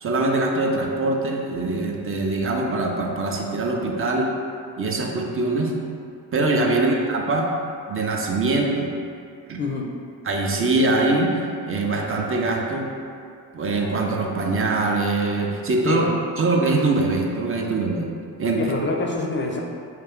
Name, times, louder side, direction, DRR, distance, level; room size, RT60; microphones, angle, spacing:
voice 1, 0.0-4.3 4.8-5.8 6.3-7.5 7.9-8.9 9.5-9.6 10.3-12.9 13.5-16.0 16.4-18.1 18.4-18.6, right 2 dB, 30° right, 0 dB, 0.4 m, -23 dB
voice 2, 9.6-9.9 15.8-16.2 18.5-19.6, left 2 dB, 25° left, 0 dB, 0.4 m, -26 dB
2.4 x 2.3 x 3.5 m, 2.4 s
supercardioid pair, 60°, 43 cm